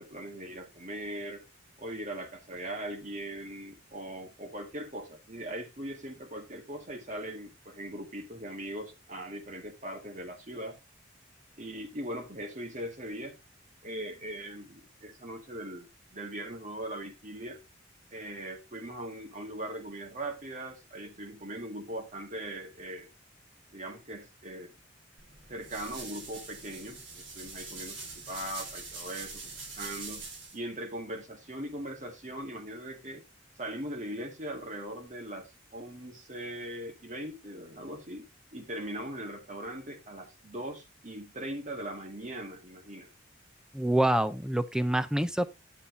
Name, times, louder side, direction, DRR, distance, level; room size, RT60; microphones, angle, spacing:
voice 1, 0.0-1.4 1.8-10.8 11.6-13.4 13.8-17.6 18.1-23.1 23.7-24.7 25.5-30.3 30.5-33.2 33.6-38.3 38.5-43.1, right 1 dB, 40° right, 1.8 m, -40 dB
sound 1, 25.2-30.6, right 3 dB, 80° right, 3.5 m, -43 dB
voice 2, 43.7-45.5, right 1 dB, 5° right, 0.5 m, -26 dB
10.0 x 7.1 x 2.7 m
head